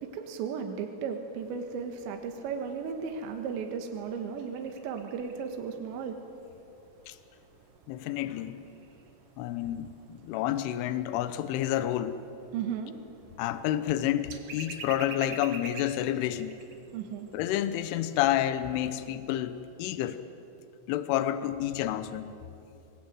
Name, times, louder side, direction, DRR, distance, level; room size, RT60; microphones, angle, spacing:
voice 1, 0.0-6.2 12.5-12.9 16.9-17.3, right 6 dB, 70° right, 5 dB, 3.6 m, -35 dB
sound 1, 1.4-19.1, right 4 dB, 55° right, 1.6 m, -50 dB
voice 2, 7.9-8.6 9.4-12.2 13.4-16.6 17.3-20.2 20.9-22.3, left 12 dB, 85° left, 12 dB, 3.4 m, -29 dB
24.5 x 21.0 x 9.1 m, 2.7 s
omnidirectional pair, 5.6 m